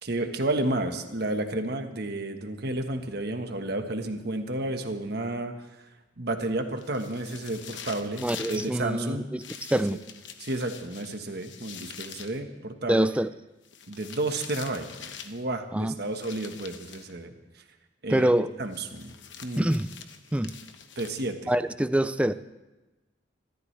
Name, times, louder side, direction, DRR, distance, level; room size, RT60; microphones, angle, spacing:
voice 1, 0.0-5.5 6.2-9.2 9.9-10.0 10.4-13.1 13.9-14.9 15.2-17.3 18.0-18.3 18.6-19.1 19.4-19.6 21.0-21.5, right 2 dB, 60° right, 6 dB, 1.4 m, -31 dB
sound 1, 6.8-8.7 9.4-12.4 13.6-15.4 16.1-17.1 18.7-21.5, left 7 dB, 75° left, 1.1 m, -44 dB
voice 2, 8.2-10.0 12.9-13.3 15.7-15.9 18.1-18.5 19.6-19.9 20.3-20.5 21.5-22.3, right 1 dB, 5° right, 13 dB, 0.4 m, -25 dB
26.5 x 13.5 x 3.3 m, 1.1 s
head